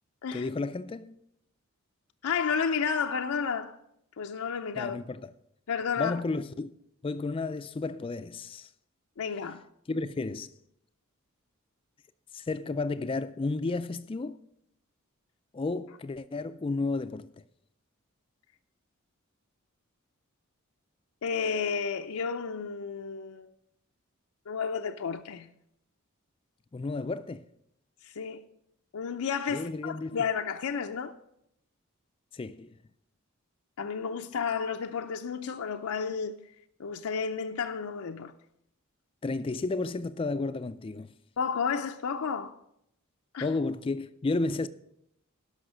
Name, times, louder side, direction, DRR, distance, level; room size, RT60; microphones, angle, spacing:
voice 1, 0.3-1.1 4.8-5.3 6.0-6.7 7.0-8.7 9.9-10.5 12.3-14.4 15.5-17.3 26.7-27.4 29.5-30.2 32.3-32.7 39.2-41.1 43.4-44.7, left 3 dB, 25° left, 0.3 m, -32 dB
voice 2, 2.2-3.8 4.2-5.0 5.7-6.2 9.2-9.6 21.2-23.5 24.5-25.5 28.0-28.4 28.9-31.1 33.8-36.4 36.8-38.3 41.4-42.5 43.3-43.5, left 6 dB, 90° left, 0.5 m, -31 dB
12.0 x 5.7 x 6.3 m
head